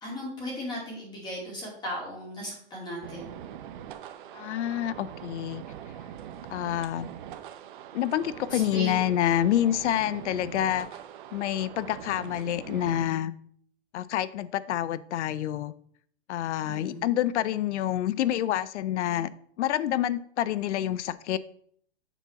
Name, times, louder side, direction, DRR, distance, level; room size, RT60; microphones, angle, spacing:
voice 1, 0.0-3.4 8.5-9.0 16.7-17.0, left 1 dB, 15° left, -3 dB, 2.4 m, -36 dB
sound 1, 3.0-13.1, right 10 dB, 50° right, 0.7 m, -42 dB
voice 2, 4.3-5.6 6.5-7.1 7.9-10.9 11.3-13.3 13.9-15.7 16.3-19.3 19.6-21.4, left 11 dB, 85° left, 16 dB, 0.6 m, -27 dB
7.2 x 4.1 x 5.8 m, 0.63 s
supercardioid pair, 165°, 34 cm